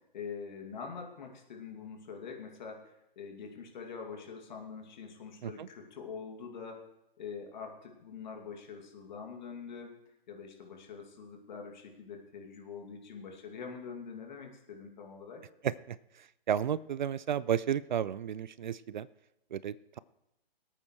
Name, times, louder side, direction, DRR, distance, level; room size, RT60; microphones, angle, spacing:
voice 1, 0.1-6.8 7.2-9.9 10.3-15.4, left 5 dB, 50° left, 2 dB, 2.5 m, -44 dB
voice 2, 15.6-19.1 19.5-20.0, right 9 dB, 55° right, 19 dB, 0.4 m, -33 dB
23.0 x 8.8 x 3.2 m, 0.84 s
hypercardioid pair, 150°, 29 cm